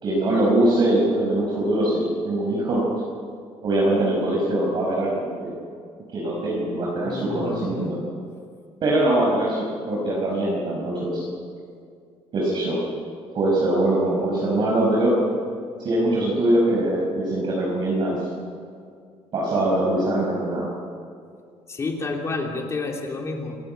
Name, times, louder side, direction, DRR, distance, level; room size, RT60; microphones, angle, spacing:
voice 1, 0.0-2.8 3.6-5.6 6.1-8.0 8.8-11.2 12.3-12.8 13.3-15.2 15.8-18.3 19.3-20.7, right 1 dB, 40° right, -3 dB, 5.0 m, -22 dB
voice 2, 7.0-8.0 21.7-23.6, left 3 dB, 25° left, 1 dB, 2.9 m, -30 dB
27.5 x 17.5 x 9.1 m, 2.2 s
cardioid pair, 165°, 11 cm